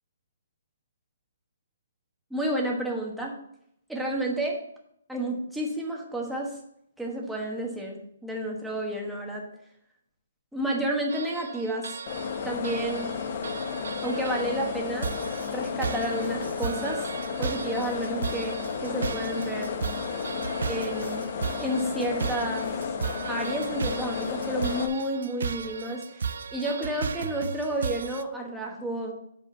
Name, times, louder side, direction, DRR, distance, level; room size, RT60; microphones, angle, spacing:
voice 1, 2.3-3.3 3.9-4.6 5.1-6.6 7.0-9.4 10.5-11.9 12.4-13.1 14.0-15.1 15.5-17.1 17.4-19.7 20.7-21.3 21.6-22.7 23.3-26.2 26.5-29.1, right 1 dB, ahead, -2 dB, 1.2 m, -31 dB
sound 1, 11.1-28.2, right 6 dB, 65° right, 0.5 m, -36 dB
sound 2, 12.1-24.9, left 6 dB, 35° left, 0.8 m, -33 dB
7.6 x 4.9 x 6.8 m, 0.72 s
hypercardioid pair, 170°, 0 cm